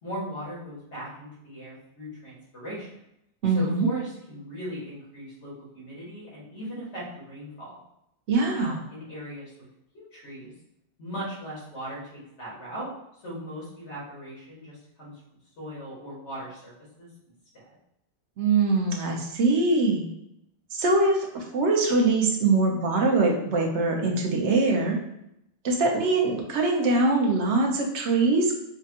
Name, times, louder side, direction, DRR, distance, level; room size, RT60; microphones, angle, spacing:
voice 1, 0.0-2.9 3.5-7.8 8.5-9.7 9.9-10.5 11.0-12.9 13.2-15.2 15.6-16.7 17.0-17.1 17.5-17.6, equal, 75° left, -6 dB, 1.9 m, -38 dB
voice 2, 3.4-3.9 8.3-8.8 18.4-20.1 20.7-25.0 25.6-28.5, right 3 dB, 75° right, 1 dB, 1.1 m, -23 dB
5.0 x 2.3 x 2.8 m, 0.80 s
omnidirectional pair, 1.2 m